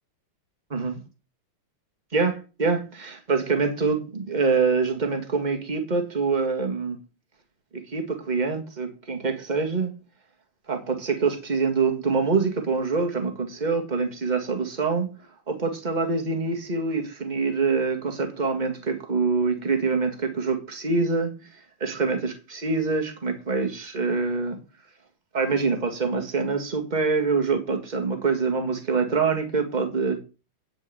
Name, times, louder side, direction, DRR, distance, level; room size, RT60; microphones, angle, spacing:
voice 1, 2.1-7.0 7.7-9.9 10.7-15.1 15.5-24.6 25.3-30.2, right 4 dB, 20° right, 1.9 m, -25 dB
9.8 x 5.1 x 7.8 m
omnidirectional pair, 2.4 m